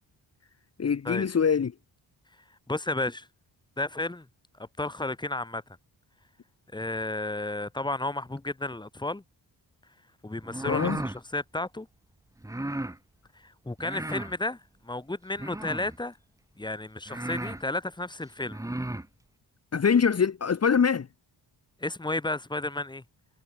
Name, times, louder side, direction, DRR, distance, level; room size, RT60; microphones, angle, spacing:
voice 1, 0.8-1.7 10.7-11.0 19.7-21.1, left 6 dB, 35° left, 2.1 m, -24 dB
voice 2, 2.7-3.3 3.8-4.3 4.8-5.6 6.7-9.2 10.2-11.9 13.4-16.2 16.6-18.6 21.8-23.0, left 2 dB, 10° left, 3.6 m, -32 dB
sound 1, 10.4-11.2 12.4-13.0 13.8-14.4 15.4-16.0 16.6-16.7 17.1-17.6 18.4-19.1, right 1 dB, 10° right, 4.5 m, -34 dB
wide cardioid pair, 170°, 42 cm